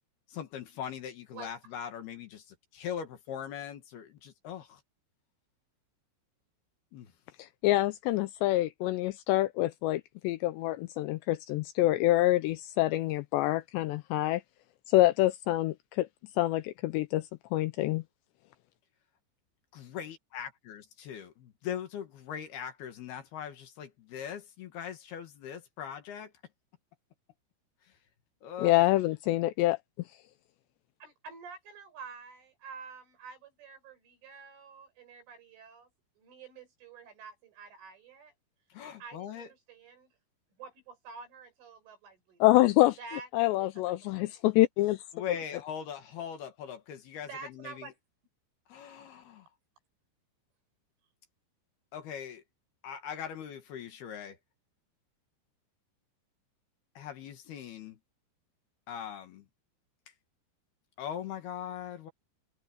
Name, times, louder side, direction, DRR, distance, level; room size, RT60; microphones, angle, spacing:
voice 1, 0.3-4.8 6.9-7.1 19.7-26.3 27.9-28.0 28.4-28.8 38.7-39.5 45.1-47.9 48.7-49.5 51.9-52.4 52.8-54.4 57.0-58.0 58.9-59.5 61.0-62.1, left 8 dB, 60° left, 3.3 m, -41 dB
voice 2, 7.4-14.4 14.9-16.1 16.4-17.2 17.5-18.0 28.6-29.8 42.4-43.0 43.3-45.0, left 17 dB, 85° left, 2.6 m, -26 dB
voice 3, 31.0-35.9 36.2-38.3 39.0-40.1 40.6-42.4 43.0-43.3 43.6-43.8 44.1-44.3 47.3-47.9, right 5 dB, 80° right, 9.4 m, -48 dB
omnidirectional pair, 5.5 m